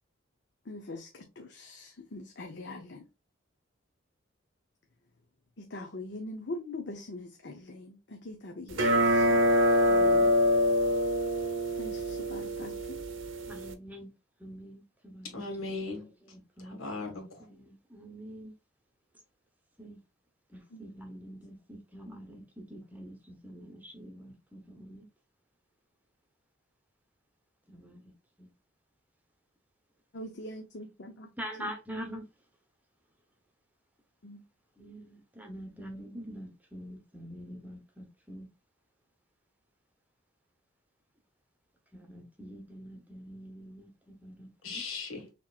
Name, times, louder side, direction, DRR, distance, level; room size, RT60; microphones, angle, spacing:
voice 1, 0.7-3.0 5.6-9.5 9.9-10.4 11.7-13.0 20.7-20.9 30.1-31.3 31.6-31.7 34.2-34.4, left 2 dB, 55° left, 0.7 m, -43 dB
sound 1, 8.7-13.7, equal, 75° right, 0.8 m, -25 dB
voice 2, 13.5-14.1 14.4-15.7 16.3-17.1 17.5-18.5 19.8-20.0 20.5-25.1 27.7-28.0 28.4-28.5 31.4-32.3 34.8-38.5 41.9-44.8, equal, 10° right, 0.9 m, -45 dB
voice 3, 15.3-16.0 16.6-17.5 44.6-45.3, left 3 dB, 85° left, 1.8 m, -38 dB
6.2 x 3.0 x 2.4 m
head